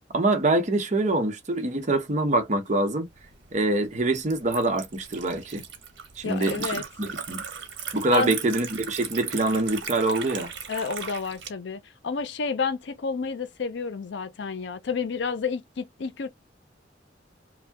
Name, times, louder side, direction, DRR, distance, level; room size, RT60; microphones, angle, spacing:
voice 1, 0.1-3.1 3.5-5.6 6.2-7.4 7.9-10.5, right 2 dB, 40° right, 0.8 m, -25 dB
Liquid, 3.1-11.5, right 7 dB, 90° right, 0.9 m, -38 dB
voice 2, 6.2-6.8 8.1-8.4 10.7-16.3, left 5 dB, 75° left, 0.5 m, -30 dB
2.7 x 2.1 x 3.4 m
head